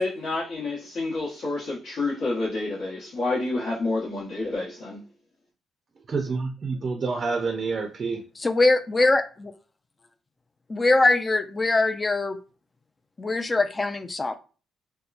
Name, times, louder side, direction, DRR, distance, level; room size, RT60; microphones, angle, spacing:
voice 1, 0.0-5.0, left 2 dB, 70° left, 1.0 m, -29 dB
voice 2, 6.1-8.2, right 4 dB, 45° right, 0.4 m, -28 dB
voice 3, 8.4-9.5 10.7-12.4 13.2-14.4, left 2 dB, 25° left, 0.3 m, -22 dB
2.8 x 2.1 x 2.4 m
cardioid pair, 90°, 0 cm